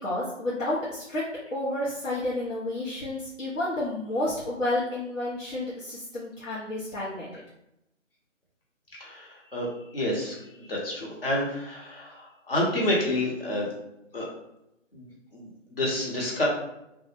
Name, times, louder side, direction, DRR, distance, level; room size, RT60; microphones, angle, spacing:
voice 1, 0.0-1.2 1.5-7.4, left 1 dB, 85° left, -7 dB, 0.8 m, -30 dB
voice 2, 9.0-13.7 14.1-14.3 14.9-16.5, left 1 dB, 50° left, -3 dB, 0.8 m, -29 dB
2.2 x 2.0 x 2.9 m, 0.86 s
figure-of-eight pair, 165°, 37 cm